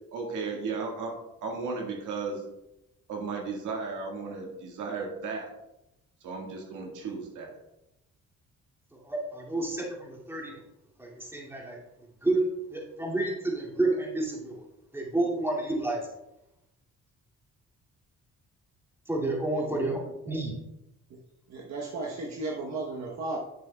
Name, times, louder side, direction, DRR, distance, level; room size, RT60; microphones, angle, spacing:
voice 1, 0.1-2.4 3.1-5.5 6.2-7.5, right 4 dB, 85° right, 0 dB, 1.8 m, -35 dB
voice 2, 8.9-10.6 11.0-11.8 12.2-14.6 14.9-16.0 19.1-20.0 20.3-20.6, right 2 dB, 10° right, -3 dB, 2.4 m, -30 dB
voice 3, 19.5-20.6 21.1-21.2 21.5-23.4, right 3 dB, 60° right, -1 dB, 1.1 m, -36 dB
10.0 x 6.8 x 2.3 m, 0.90 s
cardioid pair, 90°, 30 cm